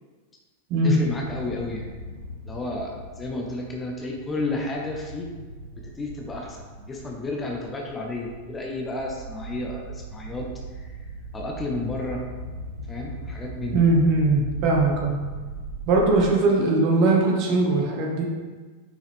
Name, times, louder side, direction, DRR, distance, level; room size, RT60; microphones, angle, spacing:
voice 1, 0.8-1.9 2.5-5.3 5.8-11.0 11.3-12.2 12.9-13.8, left 2 dB, 15° left, 0 dB, 1.2 m, -32 dB
sound 1, 1.0-16.4, right 2 dB, 80° right, 0.8 m, -39 dB
voice 2, 13.7-15.1 15.9-18.2, right 2 dB, 40° right, -1 dB, 1.9 m, -20 dB
9.1 x 5.5 x 3.6 m, 1.4 s
figure-of-eight pair, 90°, 0 cm